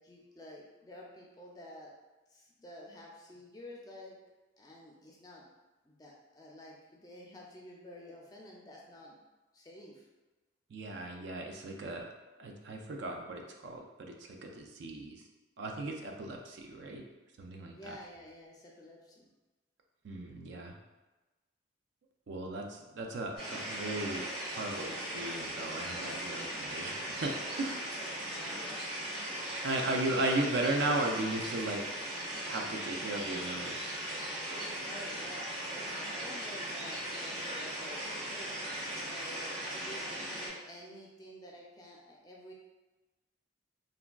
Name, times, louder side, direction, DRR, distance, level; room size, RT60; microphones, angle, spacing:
voice 1, 0.0-1.9 2.3-4.2 4.6-5.4 5.8-9.2 9.5-10.0 17.7-19.3 28.3-29.1 29.4-29.6 34.9-38.6 39.1-42.5, left 1 dB, 20° left, -2 dB, 0.4 m, -50 dB
voice 2, 10.7-12.1 12.4-15.2 15.6-17.0 17.4-18.0 20.0-20.7 22.3-27.9 29.6-31.8 32.4-33.9, right 2 dB, 65° right, 2 dB, 0.4 m, -36 dB
sound 1, 23.4-40.5, right 1 dB, 30° right, 1.2 m, -38 dB
3.4 x 2.2 x 2.3 m, 1.1 s
head